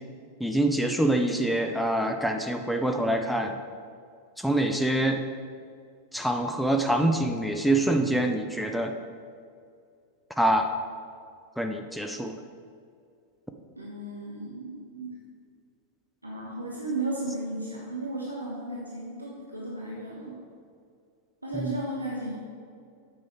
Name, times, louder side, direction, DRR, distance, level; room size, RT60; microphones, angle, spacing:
voice 1, 0.4-3.6 4.4-5.2 6.1-8.9 10.4-10.7 11.6-12.3 21.5-21.7, right 1 dB, ahead, 4 dB, 0.6 m, -25 dB
voice 2, 13.7-15.2 16.2-20.4 21.4-22.3, right 2 dB, 85° right, -4 dB, 1.4 m, -34 dB
9.3 x 7.6 x 4.5 m, 2.3 s
figure-of-eight pair, 90°, 0 cm